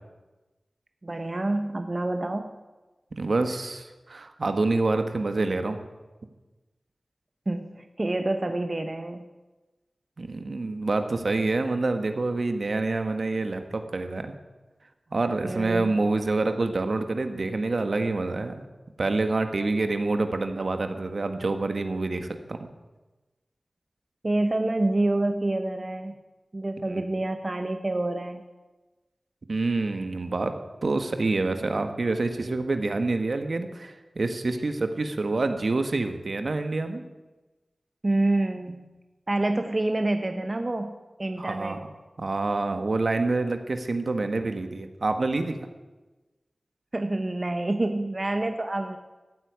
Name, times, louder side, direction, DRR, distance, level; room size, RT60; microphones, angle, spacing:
voice 1, 1.0-2.5 7.5-9.3 15.4-16.0 24.2-26.2 26.5-28.4 38.0-38.9 39.3-40.9 41.2-41.8 46.9-49.0, right 2 dB, 40° right, 7 dB, 0.9 m, -27 dB
voice 2, 3.2-5.8 10.2-14.3 15.1-18.7 19.0-22.7 26.9-27.0 29.5-30.5 30.8-37.0 41.4-41.8 42.2-45.6, right 3 dB, 65° right, 7 dB, 1.4 m, -27 dB
15.0 x 8.4 x 9.4 m, 1.2 s
wide cardioid pair, 70°, 0 cm